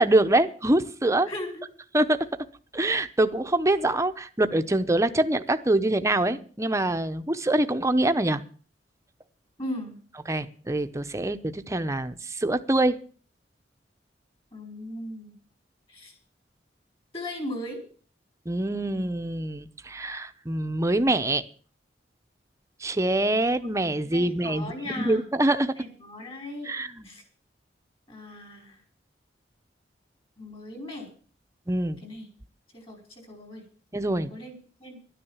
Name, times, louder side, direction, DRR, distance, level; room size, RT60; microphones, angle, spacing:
voice 1, 0.0-1.3 1.9-2.2 2.7-8.4 10.3-12.9 18.5-21.4 22.8-25.7 26.7-27.1 31.7-32.0 33.9-34.3, right 1 dB, 15° right, 9 dB, 0.8 m, -24 dB
voice 2, 1.3-1.6 9.6-9.9 14.5-15.3 15.9-16.1 17.1-17.8 23.6-23.7 24.1-25.2 25.8-26.7 27.0-27.2 28.1-28.8 30.4-31.1 32.0-32.3 32.7-33.6 34.3-35.0, left 1 dB, 30° left, 4 dB, 4.8 m, -38 dB
12.0 x 10.0 x 7.3 m, 0.42 s
head